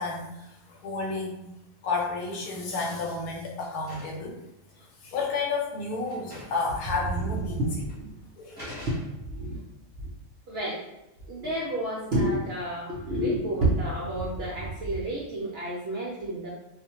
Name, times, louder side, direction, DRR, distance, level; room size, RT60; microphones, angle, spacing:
voice 1, 0.0-1.5 1.8-4.4 5.0-7.6 8.4-8.7, left 3 dB, 90° left, 0 dB, 1.1 m, -31 dB
sound 1, 2.3-2.6 3.0-4.3 5.3-5.4 5.7-5.8 6.1-6.7 7.0-7.1 7.9-8.0 8.6-9.5, left 1 dB, 20° right, 0.7 m, -45 dB
voice 2, 7.5-7.9 8.7-9.6 10.0-10.1 10.5-10.8 11.3-16.5, right 1 dB, 65° right, -5 dB, 0.6 m, -29 dB
2.4 x 2.1 x 2.8 m, 0.93 s
omnidirectional pair, 1.5 m